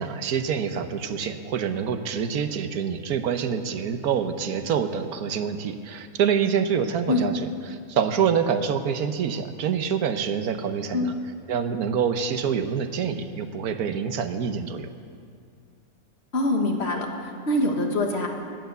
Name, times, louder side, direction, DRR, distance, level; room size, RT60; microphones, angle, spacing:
voice 1, 0.0-7.4 7.7-11.1 11.5-14.9, right 7 dB, 85° right, 9 dB, 1.3 m, -26 dB
voice 2, 16.3-18.3, left 2 dB, 45° left, 2 dB, 1.7 m, -24 dB
16.5 x 10.5 x 6.8 m, 2.2 s
omnidirectional pair, 1.5 m